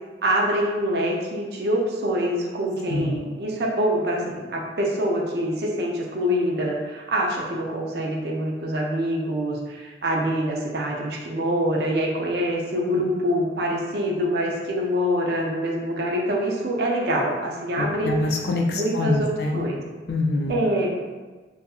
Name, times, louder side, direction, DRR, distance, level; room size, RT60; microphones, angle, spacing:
voice 1, 0.2-18.2 18.7-19.8 20.5-21.0, equal, 65° right, -1 dB, 0.4 m, -25 dB
voice 2, 17.7-19.7 20.1-20.6, left 2 dB, 65° left, 0 dB, 0.3 m, -25 dB
2.7 x 2.4 x 2.3 m, 1.3 s
head